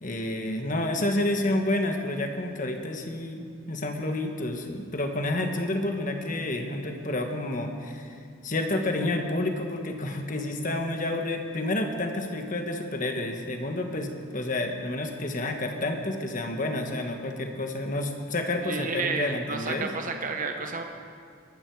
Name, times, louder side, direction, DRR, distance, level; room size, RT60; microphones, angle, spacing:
voice 1, 0.0-8.2 8.4-19.9, left 1 dB, 40° left, 4 dB, 1.5 m, -29 dB
voice 2, 18.6-20.8, right 4 dB, 40° right, 4 dB, 1.0 m, -31 dB
22.0 x 11.5 x 4.8 m, 2.3 s
head